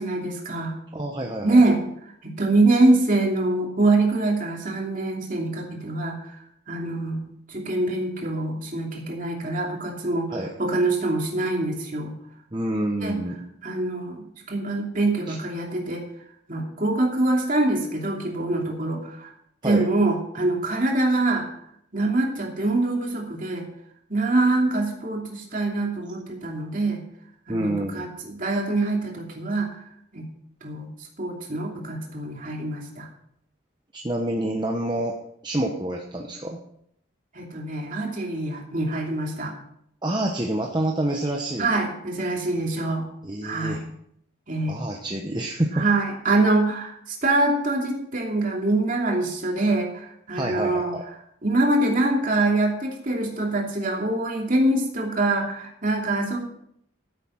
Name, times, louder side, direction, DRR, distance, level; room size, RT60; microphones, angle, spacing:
voice 1, 0.0-0.8 1.4-1.8 2.2-6.4 6.7-12.1 13.0-13.2 13.6-16.0 16.5-19.3 19.6-21.6 21.9-23.6 24.1-27.0 27.5-29.8 30.1-30.3 30.6-30.9 31.2-33.1 37.3-39.5 41.6-43.1 43.4-43.8 44.5-44.8 45.7-50.9 51.4-56.4, right 2 dB, 40° right, 0 dB, 2.8 m, -24 dB
voice 2, 0.9-1.6 10.3-10.5 12.5-13.4 15.3-15.4 19.6-19.9 27.5-28.1 33.9-35.2 35.4-36.6 40.0-41.7 43.2-43.8 44.7-45.8 50.3-51.0, right 1 dB, 20° right, 1 dB, 1.0 m, -27 dB
14.0 x 8.1 x 5.7 m, 0.72 s
head